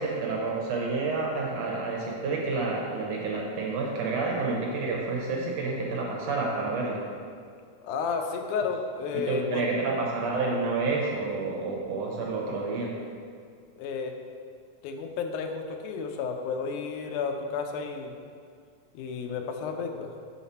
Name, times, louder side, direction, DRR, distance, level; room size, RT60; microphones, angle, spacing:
voice 1, 0.0-7.0 9.1-12.9, right 3 dB, 70° right, -2 dB, 1.8 m, -29 dB
voice 2, 7.8-9.7 13.8-14.2 14.8-18.2 18.9-20.1, left 5 dB, 85° left, 5 dB, 2.1 m, -32 dB
5.9 x 5.8 x 4.1 m, 2.2 s
omnidirectional pair, 3.5 m